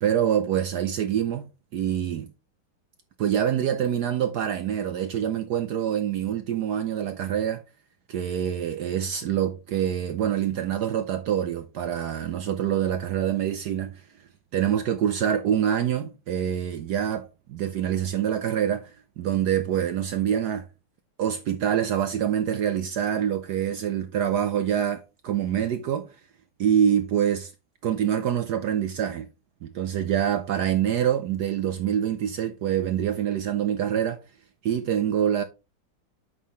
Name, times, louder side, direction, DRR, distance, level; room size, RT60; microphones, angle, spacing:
voice 1, 0.0-1.4 1.7-2.3 3.2-7.6 8.1-14.0 14.5-20.7 21.2-26.1 26.6-27.5 27.8-29.3 29.6-34.2 34.6-35.4, right 9 dB, 70° right, 1.0 m, -25 dB
8.4 x 5.7 x 3.1 m
omnidirectional pair, 2.3 m